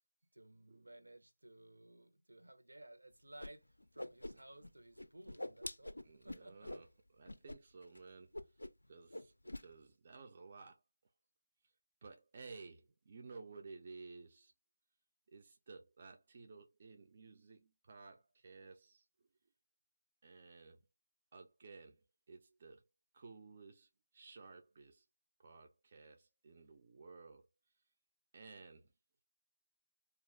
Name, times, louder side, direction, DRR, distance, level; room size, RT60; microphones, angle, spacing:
voice 1, 0.3-6.7, right 1 dB, 75° right, 0.7 m, -58 dB
Whoosh swoosh swish, 3.4-3.5 3.8-4.7 5.0-6.9 7.3-7.6 7.8-8.0 8.3-8.9 9.1-9.7, left 1 dB, 80° left, 0.3 m, -45 dB
voice 2, 6.0-6.9 7.2-8.4 8.9-10.8 12.0-14.5 15.3-19.1 20.2-20.8 21.3-22.8 23.1-25.1 25.4-27.5 28.3-28.9, right 4 dB, 35° right, 0.3 m, -55 dB
2.3 x 2.3 x 3.2 m
figure-of-eight pair, 160°, 0 cm